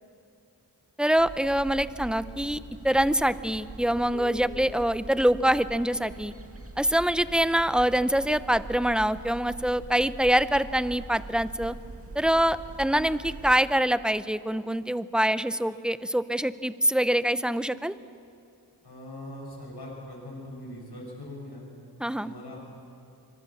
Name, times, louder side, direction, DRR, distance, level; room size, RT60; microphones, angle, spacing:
voice 1, 1.0-2.6 2.8-6.3 6.8-11.8 12.1-17.9 22.0-22.3, right 1 dB, ahead, 14 dB, 0.7 m, -25 dB
sound 1, 1.2-13.5, right 2 dB, 35° right, 2.2 m, -43 dB
Keyboard (musical), 4.1-7.1, left 8 dB, 25° left, 7.4 m, -48 dB
voice 2, 18.8-21.7 22.2-22.6, left 1 dB, 75° left, -3 dB, 6.5 m, -41 dB
24.5 x 22.5 x 7.2 m, 2.4 s
cardioid pair, 45°, 40 cm